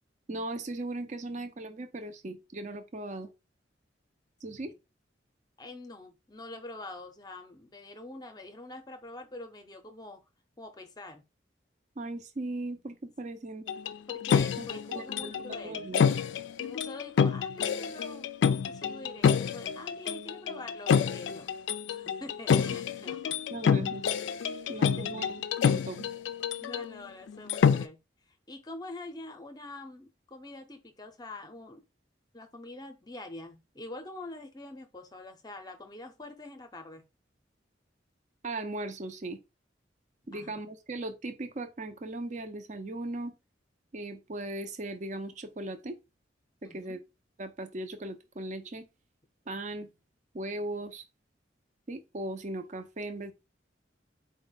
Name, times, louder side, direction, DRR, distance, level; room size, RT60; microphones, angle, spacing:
voice 1, 0.3-3.3 4.4-4.7 12.0-13.7 14.6-16.1 23.5-24.1 24.7-26.1 38.4-39.4 40.3-43.3 43.9-46.0 46.6-47.0 47.4-48.9 49.5-49.9 50.3-51.0 51.9-53.3, right 2 dB, 40° right, 0.6 m, -38 dB
voice 2, 5.6-10.2 10.6-11.2 14.1-15.9 16.6-18.3 18.7-21.5 21.8-23.4 24.6-25.1 26.6-28.0 28.3-31.8 32.3-37.0 40.3-40.5 46.6-47.0, left 2 dB, 20° left, 0.6 m, -45 dB
sound 1, 13.7-26.9 27.3-27.9, left 7 dB, 80° left, 0.3 m, -28 dB
4.4 x 2.1 x 3.9 m
head